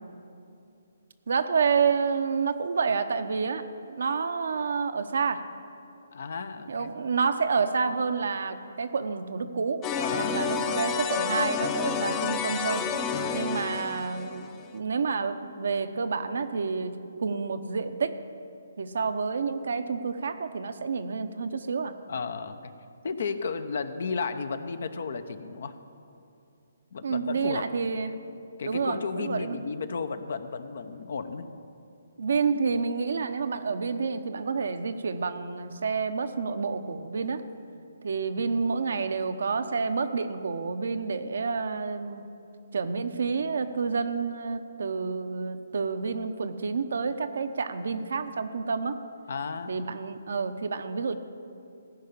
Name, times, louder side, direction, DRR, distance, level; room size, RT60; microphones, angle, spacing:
voice 1, 1.3-3.6 3.9-5.4 6.7-9.8 10.2-12.9 13.3-17.0 17.2-18.2 18.8-22.0 27.0-28.1 28.6-29.6 32.2-37.4 38.0-42.2 42.7-49.0 49.7-51.2, right 5 dB, 65° right, 9 dB, 0.7 m, -29 dB
voice 2, 6.1-6.9 9.9-10.7 13.1-13.5 22.1-22.6 23.0-25.8 26.9-27.7 28.6-31.5 49.3-49.9, left 5 dB, 60° left, 10 dB, 0.8 m, -34 dB
sound 1, 9.8-14.7, left 6 dB, 20° left, 0.7 m, -30 dB
15.0 x 5.6 x 8.6 m, 2.6 s
hypercardioid pair, 145°, 0 cm